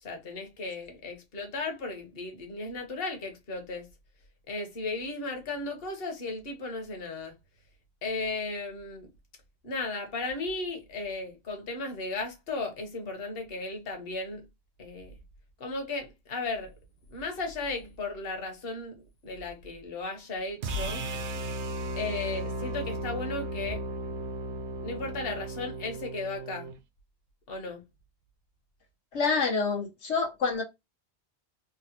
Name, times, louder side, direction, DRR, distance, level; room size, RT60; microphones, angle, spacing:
voice 1, 0.0-3.9 4.5-7.3 8.0-9.1 9.6-14.4 14.8-15.2 15.6-16.7 17.1-21.0 22.0-23.8 24.8-26.7 27.5-27.8, left 3 dB, 60° left, 1.2 m, -35 dB
sound 1, 20.6-26.8, right 1 dB, 85° right, 0.9 m, -35 dB
voice 2, 29.1-30.6, left 4 dB, 90° left, 1.3 m, -27 dB
3.8 x 2.1 x 2.8 m
omnidirectional pair, 1.1 m